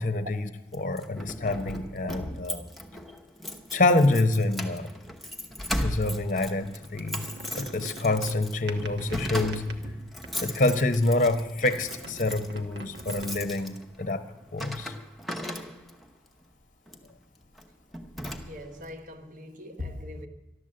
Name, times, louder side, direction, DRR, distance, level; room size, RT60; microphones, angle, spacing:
voice 1, 0.0-0.4 0.8-2.6 3.7-4.9 5.8-7.3 7.5-9.7 10.4-14.3 14.5-14.9, left 2 dB, 45° left, 0.8 m, -26 dB
Keys jangling, 0.7-16.1 16.9-17.1 17.6-17.7 17.9-18.8, equal, ahead, 0.9 m, -37 dB
sound 1, 6.7-10.9 11.3-13.7, right 1 dB, 75° right, 1.2 m, -44 dB
voice 2, 18.4-20.3, left 2 dB, 45° right, 1.2 m, -41 dB
13.0 x 12.0 x 7.7 m
head